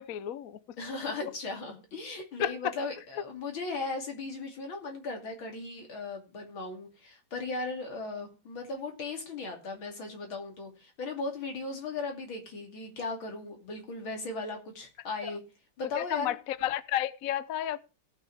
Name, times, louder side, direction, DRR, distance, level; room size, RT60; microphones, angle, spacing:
voice 1, 0.0-0.8 2.4-2.7 15.2-15.3 15.9-17.8, left 11 dB, 60° left, 0.9 m, -32 dB
voice 2, 0.8-15.4 15.8-16.4, left 3 dB, 80° left, 3.5 m, -37 dB
17.0 x 6.4 x 4.7 m
omnidirectional pair, 2.1 m